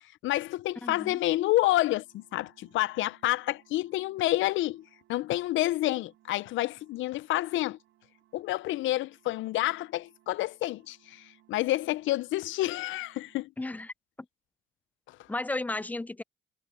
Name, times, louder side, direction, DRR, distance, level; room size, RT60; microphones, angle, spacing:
voice 1, 0.2-7.8 8.3-13.5 15.1-15.2, left 16 dB, 75° left, 0.4 m, -29 dB
voice 2, 0.8-1.2 13.6-13.9 15.3-16.2, left 2 dB, 10° left, 0.4 m, -34 dB
stronger than the dark itself, 1.1-13.4, right 14 dB, 90° right, 4.6 m, -66 dB
cardioid pair, 90°, 20 cm